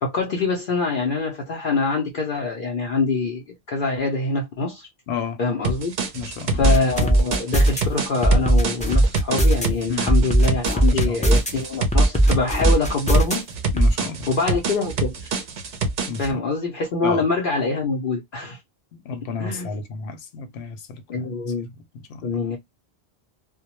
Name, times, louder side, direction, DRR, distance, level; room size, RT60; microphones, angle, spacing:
voice 1, 0.0-4.9 5.4-6.0 6.5-13.4 14.3-15.3 16.2-18.6 19.4-19.8 21.1-21.7 22.2-22.6, left 3 dB, 60° left, 0.7 m, -25 dB
voice 2, 5.1-5.4 6.1-6.7 9.9-10.1 10.8-11.4 13.7-14.3 16.1-16.4 17.0-17.2 18.9-21.3 22.1-22.4, left 6 dB, 85° left, 0.9 m, -32 dB
sound 1, 5.6-16.3, right 3 dB, 55° right, 0.6 m, -27 dB
sound 2, 6.6-7.8 8.2-9.7 10.1-11.5 11.9-13.3 13.8-13.9, right 1 dB, 10° left, 0.4 m, -17 dB
2.2 x 2.1 x 2.9 m
omnidirectional pair, 1.1 m